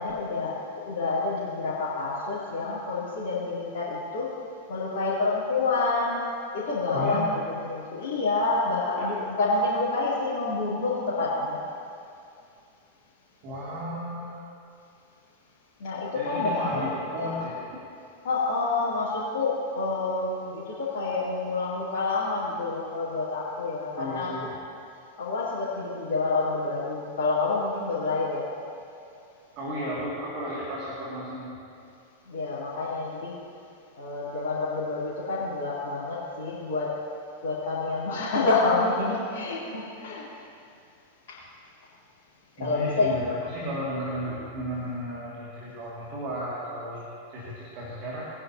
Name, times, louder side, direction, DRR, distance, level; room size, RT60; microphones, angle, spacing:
voice 1, 0.0-4.3 4.7-6.2 6.5-7.2 7.5-11.6 15.8-16.9 17.2-17.4 18.2-24.5 25.2-28.5 32.3-33.3 34.0-36.9 37.4-40.2 41.3-41.4 42.6-43.1, left 3 dB, 55° left, -12 dB, 3.3 m, -28 dB
voice 2, 6.9-7.3 9.0-9.1 13.4-14.4 16.1-17.6 24.0-24.6 29.6-31.6 42.6-48.3, equal, 40° right, -5 dB, 2.5 m, -34 dB
21.0 x 9.9 x 2.9 m, 2.5 s
figure-of-eight pair, 90°, 0 cm